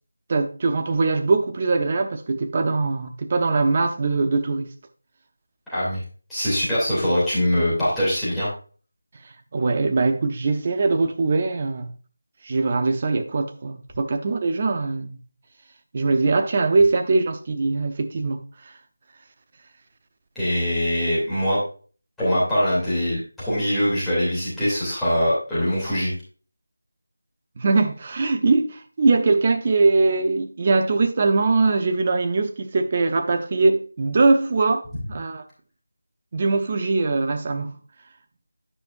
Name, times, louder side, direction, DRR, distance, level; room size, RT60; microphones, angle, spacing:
voice 1, 0.3-4.7 9.5-11.9 12.4-15.2 15.9-18.4 27.6-35.4 36.3-37.7, right 3 dB, 30° right, 0.8 m, -21 dB
voice 2, 5.7-6.0 6.3-8.5 20.3-21.6 22.2-26.1, equal, ahead, 2.9 m, -22 dB
9.9 x 6.2 x 2.6 m
figure-of-eight pair, 170°, 0 cm